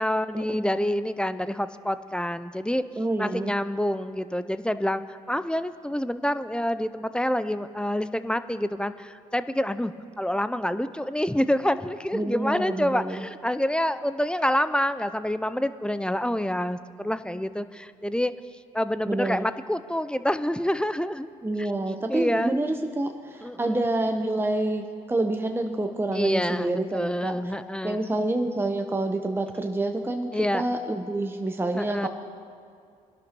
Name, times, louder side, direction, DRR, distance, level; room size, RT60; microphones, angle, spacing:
voice 1, 0.0-2.8 3.2-18.3 18.7-21.3 21.6-21.7 22.1-22.5 23.4-23.8 26.1-28.0 30.3-30.6 31.7-32.1, left 1 dB, 5° left, 12 dB, 0.5 m, -27 dB
voice 2, 3.0-3.5 12.1-13.2 19.0-19.5 21.4-27.4 27.8-32.1, right 2 dB, 15° right, 4 dB, 0.9 m, -28 dB
20.5 x 11.0 x 3.0 m, 2.2 s
hypercardioid pair, 50°, 18 cm